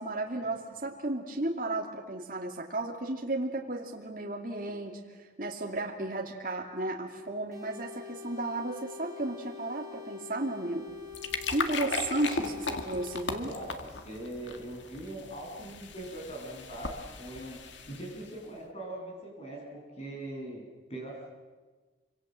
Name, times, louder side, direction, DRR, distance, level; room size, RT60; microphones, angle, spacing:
voice 1, 0.0-10.9 11.5-12.5 12.9-13.5, right 2 dB, 45° right, 0 dB, 2.5 m, -34 dB
sound 1, 7.5-13.2, left 7 dB, 15° right, 4.1 m, -45 dB
sound 2, 10.9-18.4, left 3 dB, 75° left, 2.1 m, -37 dB
voice 2, 13.4-20.6 20.9-21.3, right 1 dB, 35° left, 0 dB, 7.6 m, -41 dB
26.5 x 25.5 x 7.7 m, 1.3 s
head